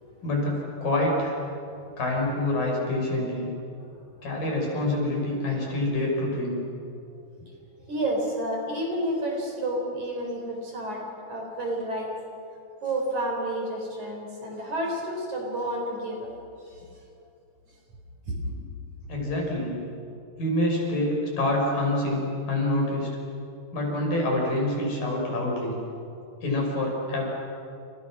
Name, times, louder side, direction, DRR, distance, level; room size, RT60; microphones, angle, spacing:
voice 1, 0.2-1.4 2.0-3.5 4.2-6.6 19.1-19.8 20.4-23.1 23.7-25.8 26.4-27.2, left 1 dB, 60° left, 0 dB, 7.2 m, -26 dB
voice 2, 7.8-11.0 11.3-12.1 12.8-16.3 18.3-18.5, right 1 dB, 50° right, 1 dB, 5.7 m, -30 dB
30.0 x 28.5 x 6.3 m, 2.6 s
omnidirectional pair, 4.5 m